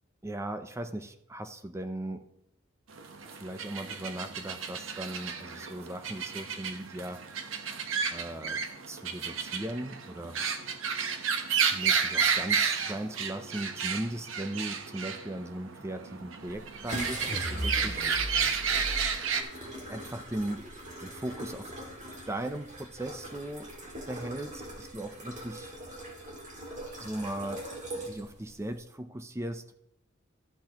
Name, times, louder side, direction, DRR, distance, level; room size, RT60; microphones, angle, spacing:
voice 1, 0.2-2.3 3.2-7.2 8.1-8.6 8.9-10.4 11.6-18.5 19.9-20.6 21.0-21.7 22.3-23.7 24.1-25.7 27.0-27.7 27.9-29.8, right 1 dB, 15° right, 8 dB, 0.5 m, -38 dB
sound 1, 2.9-19.4, right 6 dB, 75° right, 0.9 m, -32 dB
sound 2, 16.4-28.8, right 1 dB, 40° right, 2.1 m, -42 dB
sound 3, 17.3-19.1, equal, 45° left, 1.6 m, -36 dB
12.5 x 8.0 x 2.9 m, 0.77 s
head